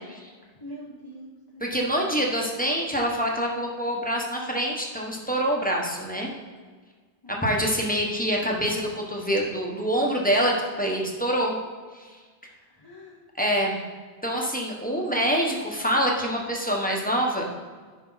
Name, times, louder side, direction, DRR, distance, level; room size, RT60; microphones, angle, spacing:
voice 1, 0.5-2.3 7.2-7.6 12.6-13.2 14.9-15.1, equal, 25° left, -2 dB, 0.9 m, -44 dB
voice 2, 1.6-6.3 7.4-11.6 11.9-12.1 13.4-13.8 14.2-17.5, equal, 10° left, -2 dB, 1.2 m, -25 dB
11.0 x 4.8 x 4.0 m, 1.5 s
omnidirectional pair, 1.1 m